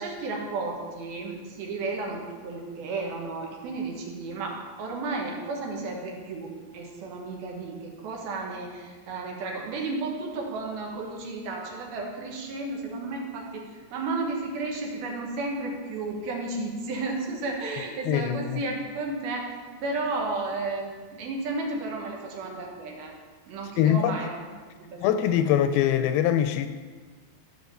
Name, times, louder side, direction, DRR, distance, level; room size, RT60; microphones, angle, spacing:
voice 1, 0.0-19.5 19.8-23.1 23.5-24.3 24.8-25.0 25.4-25.5, right 3 dB, 70° right, 3.3 m, -33 dB
voice 2, 18.1-18.6 23.8-24.2 25.0-26.7, left 10 dB, 80° left, 2.3 m, -23 dB
14.0 x 5.3 x 7.0 m
omnidirectional pair, 4.6 m